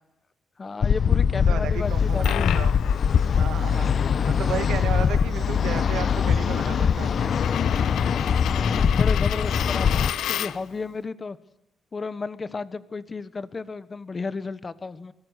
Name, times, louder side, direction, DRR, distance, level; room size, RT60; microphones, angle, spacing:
voice 1, 0.6-2.6 8.5-11.4 11.9-15.1, left 4 dB, 30° left, 15 dB, 1.1 m, -33 dB
sound 1, 0.8-10.1, left 7 dB, 50° left, 0.8 m, -22 dB
voice 2, 1.3-2.7 3.3-3.9 4.2-7.3, right 9 dB, 85° right, 11 dB, 1.8 m, -33 dB
Coin (dropping), 1.9-10.8, left 11 dB, 85° left, 0.7 m, -34 dB
24.0 x 16.5 x 8.2 m, 0.92 s
cardioid pair, 120°, 0 cm